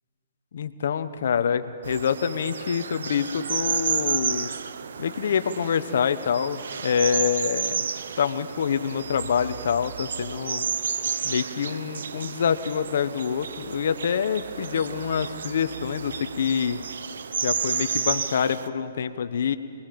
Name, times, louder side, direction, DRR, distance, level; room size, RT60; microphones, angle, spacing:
voice 1, 0.5-4.5 5.0-7.8 8.2-10.7 11.2-16.8 17.4-19.6, left 7 dB, 65° left, 10 dB, 0.9 m, -26 dB
sound 1, 1.8-18.7, right 6 dB, 75° right, 0.7 m, -31 dB
24.5 x 20.5 x 5.3 m, 2.6 s
hypercardioid pair, 145°, 0 cm